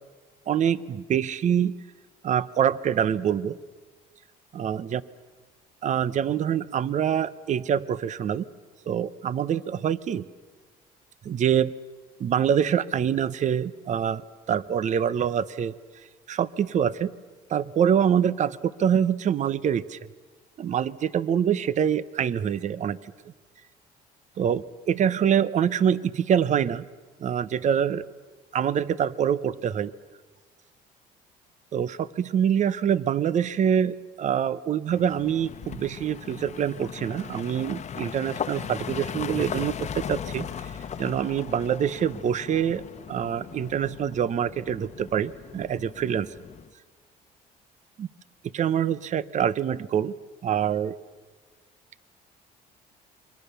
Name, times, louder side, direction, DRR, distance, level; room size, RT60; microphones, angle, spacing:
voice 1, 0.5-1.7 2.2-3.6 4.5-5.0 5.8-8.5 8.9-10.2 11.2-11.7 12.2-14.2 14.5-15.7 16.3-17.1 17.5-20.0 20.6-23.0 24.4-26.9 27.2-28.0 28.5-29.9 31.7-40.7 41.0-42.8 43.1-46.3 48.0-48.1 48.5-50.1 50.4-51.0, right 8 dB, 45° right, 18 dB, 0.8 m, -25 dB
sound 1, 34.9-46.7, left 8 dB, 40° left, 1.1 m, -38 dB
27.5 x 23.5 x 6.9 m, 1.4 s
cardioid pair, 110°, 17 cm